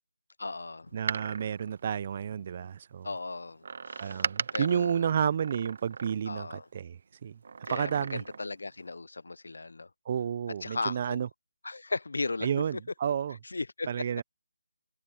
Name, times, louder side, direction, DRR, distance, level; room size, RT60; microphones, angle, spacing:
voice 1, 0.4-0.9 3.0-5.1 6.3-6.7 7.7-9.9 10.6-11.2 11.6-12.5 13.4-13.9, left 3 dB, 75° left, 0.7 m, -36 dB
voice 2, 0.9-3.1 4.0-7.4 7.7-8.2 10.1-11.3 12.4-13.4 13.9-14.2, right 8 dB, 35° right, 0.4 m, -31 dB
Door, 0.9-2.7 3.6-6.5 7.4-8.6 8.9-9.0, right 5 dB, 50° right, 1.4 m, -38 dB
figure-of-eight pair, 165°, 0 cm